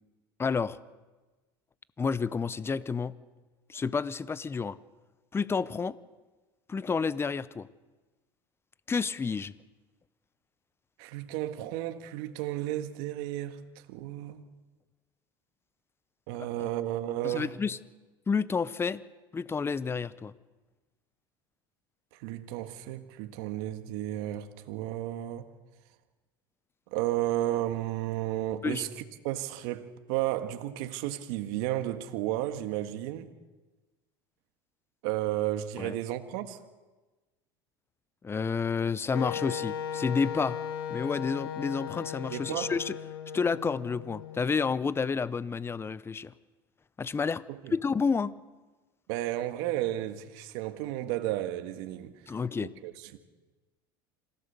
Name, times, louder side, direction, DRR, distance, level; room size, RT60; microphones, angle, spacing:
voice 1, 0.4-0.8 2.0-3.1 3.7-4.8 5.3-6.0 6.7-7.7 8.9-9.5 16.6-16.7 17.2-17.8 18.3-19.0 19.3-20.3 28.6-28.8 35.8-36.0 38.2-40.6 40.9-43.0 43.3-46.3 47.0-47.4 47.7-48.3 52.3-52.7, left 5 dB, 20° left, 0.8 m, -30 dB
voice 2, 11.0-14.4 16.3-17.5 22.1-25.5 26.9-33.3 35.0-36.6 42.3-42.7 47.5-47.7 49.1-53.2, right 14 dB, 70° right, 1.6 m, -33 dB
Wind instrument woodwind instrument, 39.1-45.0, left 8 dB, 90° left, 1.8 m, -37 dB
26.5 x 16.0 x 6.9 m
supercardioid pair, 95°, 12 cm